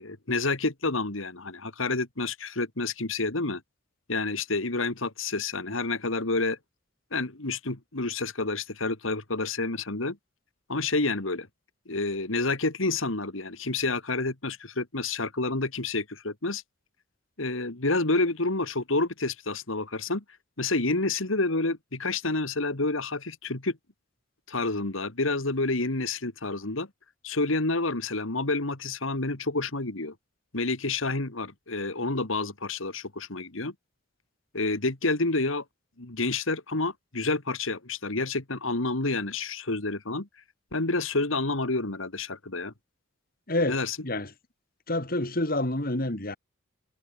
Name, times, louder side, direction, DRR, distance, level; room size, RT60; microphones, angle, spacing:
voice 1, 0.0-3.6 4.1-6.6 7.1-10.2 10.7-11.5 11.9-16.6 17.4-20.2 20.6-23.8 24.5-26.9 27.2-30.1 30.5-33.7 34.5-35.6 36.0-40.3 40.7-42.7 43.7-44.0, left 3 dB, 75° left, 2.3 m, -29 dB
voice 2, 43.5-44.3 44.9-46.4, left 1 dB, 45° left, 3.0 m, -28 dB
head